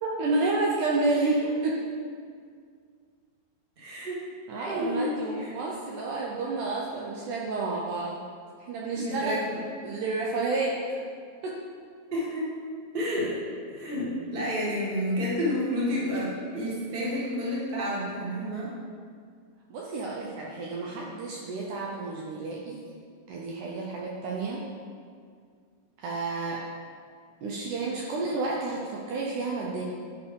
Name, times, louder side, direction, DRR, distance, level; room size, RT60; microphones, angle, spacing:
voice 1, 0.0-1.8 4.5-8.3 8.6-9.6 9.8-11.0 11.4-11.6 19.7-22.8 23.3-24.6 26.0-26.6 27.4-29.8, right 3 dB, 75° right, -3 dB, 2.0 m, -30 dB
voice 2, 3.8-4.2 4.6-5.5 8.9-9.8 12.1-12.5 12.9-13.4 13.7-18.7, left 1 dB, 25° right, -6 dB, 1.2 m, -30 dB
11.5 x 4.7 x 5.2 m, 2.1 s
omnidirectional pair, 4.2 m